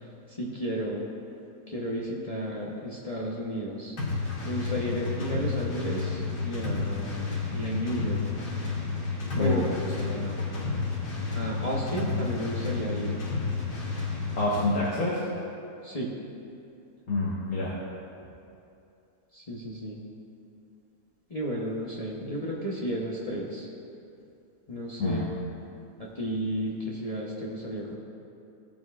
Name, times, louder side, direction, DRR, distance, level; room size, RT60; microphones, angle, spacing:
voice 1, 0.3-1.1 1.7-3.9 4.4-8.5 9.3-9.6 10.0-10.4 11.3-13.1 15.8-16.1 19.3-20.0 21.3-23.7 24.7-25.2 26.0-27.9, equal, 30° left, -5 dB, 0.8 m, -33 dB
sound 1, 4.0-14.7, left 4 dB, 80° left, 2.0 m, -31 dB
voice 2, 9.4-9.7 14.4-15.2 17.1-17.8 25.0-25.3, left 2 dB, 60° left, -7 dB, 1.7 m, -27 dB
16.5 x 7.4 x 2.4 m, 2.7 s
omnidirectional pair, 1.7 m